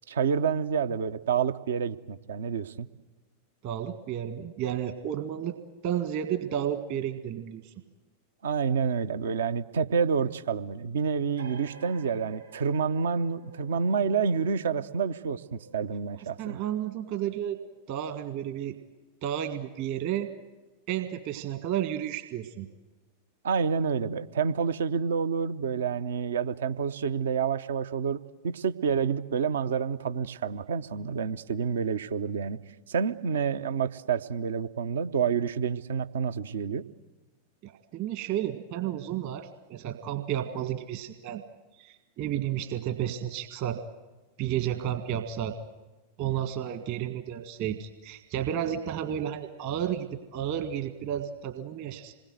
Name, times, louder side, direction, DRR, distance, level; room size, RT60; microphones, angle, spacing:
voice 1, 0.1-2.9 8.4-16.6 23.4-32.6 32.9-36.8, right 6 dB, 65° right, 12 dB, 0.8 m, -28 dB
voice 2, 3.6-5.6 5.8-7.7 16.4-17.6 17.9-18.8 19.2-20.3 20.9-22.7 37.6-41.4 41.8-43.8 44.4-45.6 46.2-52.1, right 10 dB, 45° right, 7 dB, 1.7 m, -32 dB
sound 1, 11.4-18.6, right 2 dB, 80° right, 3.6 m, -52 dB
27.5 x 21.0 x 8.0 m, 1.2 s
figure-of-eight pair, 90°, 0 cm